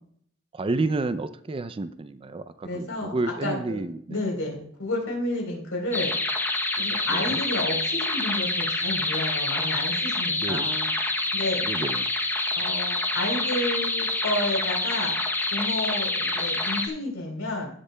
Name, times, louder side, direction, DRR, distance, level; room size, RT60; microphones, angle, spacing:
voice 1, 0.5-4.2 7.1-7.4 10.4-10.7 11.6-12.1, right 2 dB, 25° right, 12 dB, 0.4 m, -30 dB
voice 2, 2.6-3.8 4.1-6.1 6.8-10.9 11.3-11.6 12.6-15.1 15.5-17.7, left 1 dB, 85° left, 0 dB, 3.8 m, -31 dB
sound 1, 5.9-16.9, left 2 dB, 10° left, 0.8 m, -27 dB
17.5 x 6.6 x 2.2 m, 0.62 s
head